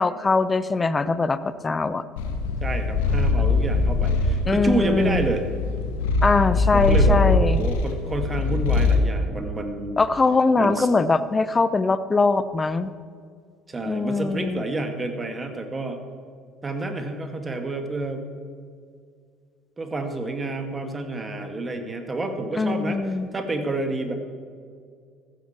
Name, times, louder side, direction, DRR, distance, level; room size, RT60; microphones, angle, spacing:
voice 1, 0.0-2.0 4.5-5.3 6.2-7.7 10.0-12.9 13.9-14.6 22.5-23.3, left 3 dB, 25° left, 14 dB, 0.8 m, -22 dB
Purr, 2.2-9.1, left 3 dB, 75° left, 1.3 m, -22 dB
voice 2, 2.6-5.4 6.7-10.0 10.6-10.9 13.7-16.0 16.6-18.2 19.8-23.0 23.3-24.2, right 2 dB, 25° right, 6 dB, 2.2 m, -29 dB
15.0 x 13.0 x 4.5 m, 2.2 s
hypercardioid pair, 65°, 0 cm